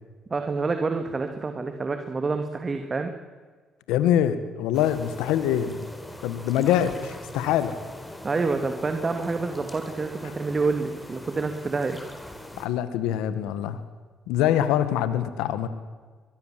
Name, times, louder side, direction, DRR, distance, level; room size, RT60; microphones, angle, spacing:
voice 1, 0.3-3.1 8.2-12.0, right 4 dB, 35° right, 6 dB, 2.5 m, -27 dB
voice 2, 3.9-5.9 6.2-7.8 12.6-13.8 14.3-15.7, left 10 dB, 90° left, 12 dB, 1.7 m, -24 dB
sound 1, 4.7-12.7, left 1 dB, 10° left, 4.8 m, -41 dB
22.5 x 22.0 x 7.7 m, 1.5 s
supercardioid pair, 75°, 0 cm